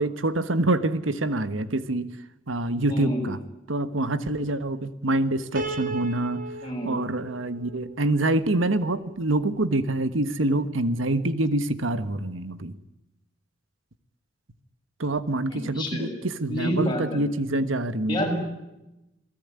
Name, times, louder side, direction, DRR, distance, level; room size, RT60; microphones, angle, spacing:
voice 1, 0.0-2.1 2.5-3.4 3.7-6.4 6.8-12.7 15.0-18.2, right 2 dB, 85° right, 12 dB, 1.3 m, -26 dB
voice 2, 2.9-3.2 6.6-6.9 15.5-16.1 16.5-17.2 18.1-18.4, equal, 25° left, 0 dB, 7.0 m, -28 dB
Piano, 5.6-8.8, right 3 dB, 45° right, 2.6 m, -36 dB
28.0 x 18.5 x 9.7 m, 0.95 s
head